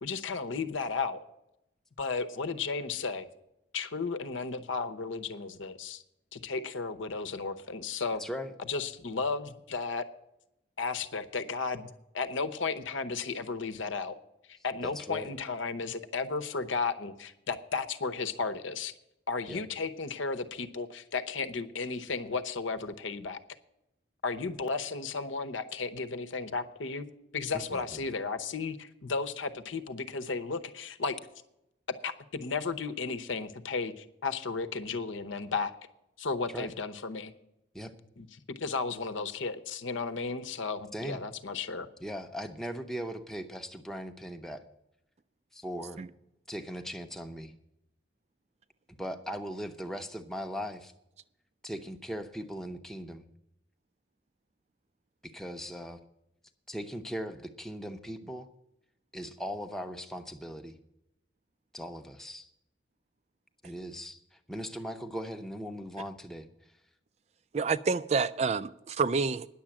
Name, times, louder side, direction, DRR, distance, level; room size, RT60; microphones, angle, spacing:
voice 1, 0.0-1.2 2.0-3.3 3.7-6.0 6.3-8.2 8.7-10.0 10.8-11.9 12.1-14.2 14.5-18.9 19.3-23.4 24.2-27.0 27.3-31.2 32.0-35.7 36.2-37.3 38.2-38.3 38.6-41.9, left 4 dB, 80° left, 0.9 m, -34 dB
voice 2, 8.2-8.5 15.0-15.3 19.5-19.6 27.7-28.0 36.5-36.7 37.7-37.9 40.9-41.2 42.0-44.6 45.5-46.1 46.5-47.5 49.0-50.9 51.6-53.2 55.2-56.0 56.7-58.5 59.1-60.7 61.7-62.5 63.6-64.2 64.5-66.5, equal, ahead, 0.6 m, -39 dB
voice 3, 67.5-69.5, right 4 dB, 35° right, 0.3 m, -28 dB
10.0 x 7.2 x 8.7 m
head